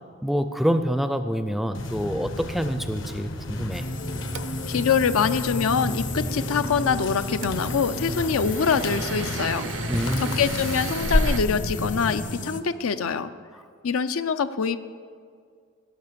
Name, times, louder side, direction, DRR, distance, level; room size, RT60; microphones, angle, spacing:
voice 1, 0.2-3.8 9.9-10.4, equal, ahead, 10 dB, 0.4 m, -26 dB
sound 1, 1.7-12.2, left 1 dB, 60° left, 0.9 m, -31 dB
sound 2, 2.4-4.9 7.2-11.4, right 7 dB, 60° right, 0.4 m, -37 dB
sound 3, 3.7-12.6, left 2 dB, 40° left, 0.6 m, -34 dB
voice 2, 4.7-9.7 10.2-13.3 13.8-14.8, left 6 dB, 85° left, 12 dB, 0.5 m, -24 dB
16.0 x 6.4 x 6.8 m, 2.1 s
head